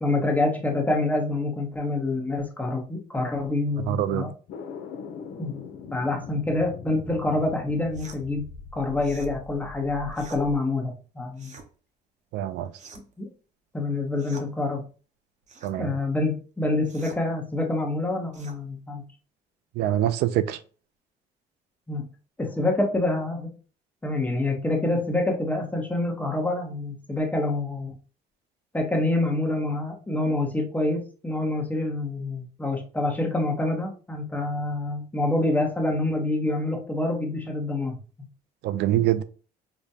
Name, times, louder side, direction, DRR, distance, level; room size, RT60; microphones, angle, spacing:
voice 1, 0.0-4.3 5.4-5.6 5.9-8.4 8.7-11.5 13.2-13.3 13.7-14.8 15.8-19.0 21.9-22.0 22.4-23.5 24.0-27.9 28.7-38.0, left 2 dB, 10° left, 0.9 m, -26 dB
voice 2, 3.9-4.3 12.3-12.7 15.6-15.9 19.8-20.6 38.6-39.2, right 12 dB, 75° right, 0.4 m, -24 dB
sound 1, 4.5-10.6, left 5 dB, 70° left, 0.7 m, -41 dB
sound 2, 7.9-8.2 9.0-9.3 10.1-10.4 11.3-11.7 12.7-13.2 14.2-14.5 15.5-15.8 16.8-17.2 18.3-18.6, right 4 dB, 45° right, 0.8 m, -46 dB
5.0 x 2.2 x 2.7 m
cardioid pair, 110°, 17 cm